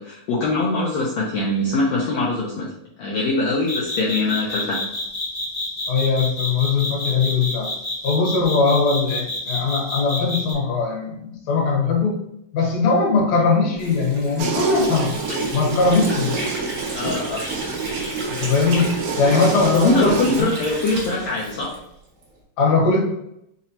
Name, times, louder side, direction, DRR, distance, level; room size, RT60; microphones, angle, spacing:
voice 1, 0.0-2.7 3.0-4.9 16.9-17.4 19.7-21.8, left 2 dB, 80° left, -4 dB, 1.6 m, -22 dB
sound 1, 3.7-10.5, left 2 dB, 45° left, 0.9 m, -28 dB
voice 2, 5.9-7.7 8.0-12.2 12.5-15.1 15.5-16.4 18.3-20.1 20.4-20.5 22.6-23.0, left 4 dB, 65° left, -1 dB, 1.9 m, -20 dB
Water / Sink (filling or washing), 13.8-22.3, right 1 dB, 55° right, 1.2 m, -33 dB
sound 2, 14.4-20.4, right 4 dB, 80° right, 1.5 m, -27 dB
5.5 x 3.0 x 2.8 m, 0.80 s
omnidirectional pair, 3.9 m